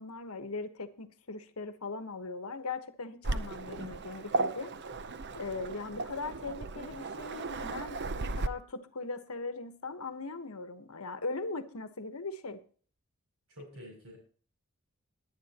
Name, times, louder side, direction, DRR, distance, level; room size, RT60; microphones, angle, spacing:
voice 1, 0.0-4.7 5.3-12.6, left 3 dB, 75° left, 9 dB, 1.3 m, -39 dB
Waves surf, 3.2-8.5, right 3 dB, 50° right, 0.7 m, -36 dB
voice 2, 13.5-14.2, left 1 dB, 70° right, 0 dB, 7.0 m, -48 dB
21.5 x 9.1 x 2.9 m, 0.43 s
head